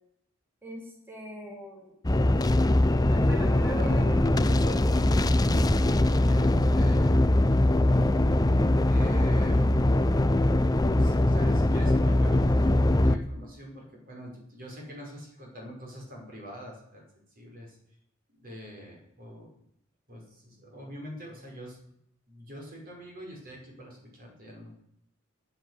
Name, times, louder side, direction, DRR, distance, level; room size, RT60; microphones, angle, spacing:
voice 1, 0.6-1.9 3.1-4.4 4.8-4.9, right 1 dB, 10° right, -2 dB, 4.9 m, -41 dB
sound 1, 2.0-13.2, left 1 dB, 20° left, 0.6 m, -22 dB
voice 2, 3.7-4.9 5.7-7.2 8.9-10.2 10.9-17.8 18.3-19.6 20.1-21.8 22.3-24.7, equal, 45° right, -1 dB, 5.6 m, -43 dB
15.0 x 9.8 x 8.4 m, 0.74 s
head